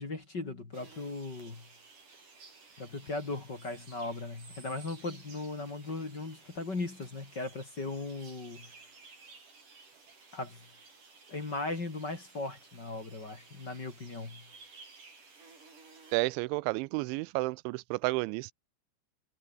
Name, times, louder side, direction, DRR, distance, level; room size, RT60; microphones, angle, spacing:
voice 1, 0.0-1.7 2.8-8.7 10.3-10.7 11.3-14.5, left 2 dB, 25° left, 3.2 m, -38 dB
sound 1, 0.7-16.2, right 4 dB, 45° right, 8.3 m, -55 dB
voice 2, 16.1-18.5, right 23 dB, 85° right, 2.9 m, -31 dB
omnidirectional pair, 5.3 m